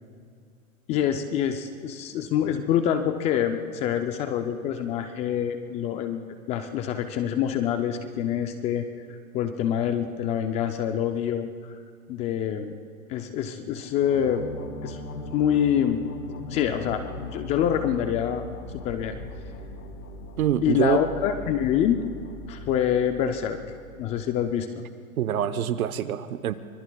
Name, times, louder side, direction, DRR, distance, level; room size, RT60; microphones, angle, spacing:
voice 1, 0.9-11.7 12.1-12.8 13.1-14.5 14.8-15.0 15.3-16.0 16.5-17.0 17.3-18.5 18.8-19.2 20.6-22.0 22.5-23.6 24.0-24.8, left 9 dB, 15° left, 8 dB, 0.3 m, -26 dB
sound 1, 13.8-24.5, left 2 dB, 90° left, 2.2 m, -39 dB
voice 2, 20.4-21.0 25.2-26.5, right 11 dB, 80° right, 13 dB, 0.9 m, -25 dB
25.0 x 23.0 x 2.3 m, 2.2 s
hypercardioid pair, 120°, 42 cm